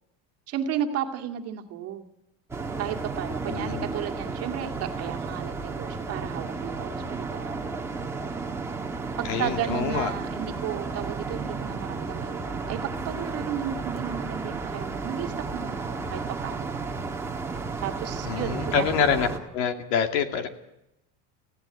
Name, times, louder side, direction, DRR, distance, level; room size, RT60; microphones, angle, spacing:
voice 1, 0.5-2.0 2.8-7.6 9.2-16.7 17.8-18.9, right 10 dB, 45° right, 4 dB, 2.2 m, -34 dB
sound 1, 2.5-19.4, right 4 dB, 5° right, 1.6 m, -33 dB
voice 2, 3.5-3.9 9.2-10.1 18.3-19.3 19.5-20.5, left 7 dB, 75° left, 6 dB, 2.6 m, -26 dB
19.0 x 16.0 x 9.7 m, 0.88 s
cardioid pair, 160°, 36 cm